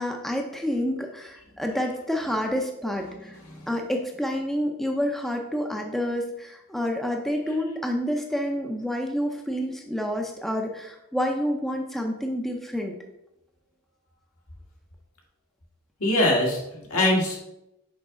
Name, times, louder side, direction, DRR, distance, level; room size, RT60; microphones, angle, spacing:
voice 1, 0.0-3.4 3.7-12.9, equal, ahead, 2 dB, 0.5 m, -28 dB
voice 2, 16.0-17.4, left 1 dB, 85° left, -1 dB, 1.8 m, -23 dB
6.2 x 4.8 x 3.7 m, 0.87 s
head